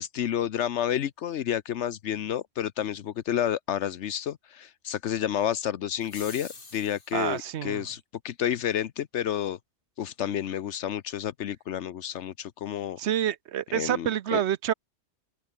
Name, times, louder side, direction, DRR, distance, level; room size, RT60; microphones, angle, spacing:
voice 1, 0.0-9.6 10.0-13.0 13.7-14.4, left 10 dB, 85° left, 1.1 m, -30 dB
sound 1, 6.0-7.3, left 3 dB, 50° left, 2.7 m, -45 dB
voice 2, 7.1-7.9 13.0-14.7, right 10 dB, 75° right, 1.0 m, -28 dB
open air
omnidirectional pair, 1.2 m